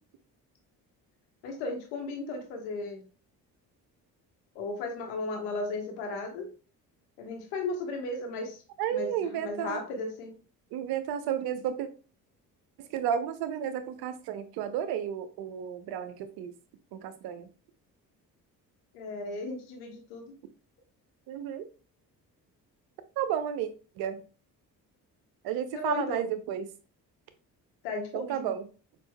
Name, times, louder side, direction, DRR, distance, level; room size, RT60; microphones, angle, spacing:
voice 1, 1.4-3.0 4.5-6.5 7.2-8.6 8.9-10.3 18.9-20.3 25.7-26.3 27.8-28.5, left 3 dB, 65° left, 3 dB, 1.1 m, -35 dB
voice 2, 8.8-9.8 10.7-11.9 12.8-16.5 16.9-17.5 21.3-21.6 23.2-23.7 24.0-24.2 25.4-26.7 28.1-28.6, right 9 dB, 50° right, 11 dB, 0.6 m, -32 dB
6.0 x 2.5 x 2.2 m, 0.36 s
figure-of-eight pair, 45°, 49 cm